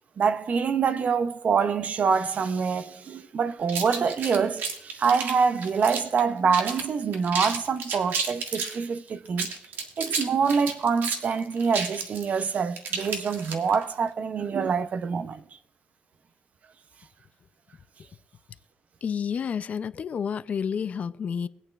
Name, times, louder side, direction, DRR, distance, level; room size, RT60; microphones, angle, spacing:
voice 1, 0.2-9.5 10.0-15.4, right 6 dB, 45° right, 0.6 m, -25 dB
sound 1, 3.7-6.2 6.5-6.9 7.1-8.8 9.3-13.8, right 5 dB, 85° right, 1.7 m, -31 dB
voice 2, 19.0-21.5, left 7 dB, 45° left, 0.5 m, -30 dB
23.0 x 8.8 x 2.4 m
cardioid pair, 130°, 3 cm